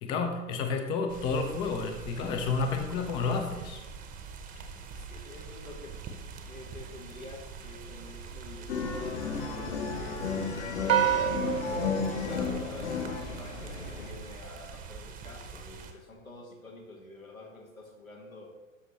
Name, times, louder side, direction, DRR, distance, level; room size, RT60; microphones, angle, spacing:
voice 1, 0.0-3.8, left 4 dB, 15° left, 5 dB, 0.4 m, -30 dB
sound 1, 1.1-15.9, right 5 dB, 20° right, 0.8 m, -44 dB
voice 2, 4.9-6.0 6.4-18.5, left 2 dB, 90° left, -1 dB, 1.8 m, -47 dB
sound 2, 8.7-14.1, left 5 dB, 55° left, 1.3 m, -33 dB
sound 3, 10.9-13.4, right 10 dB, 75° right, 0.7 m, -29 dB
12.5 x 5.8 x 3.1 m, 1.2 s
figure-of-eight pair, 100°, 40 cm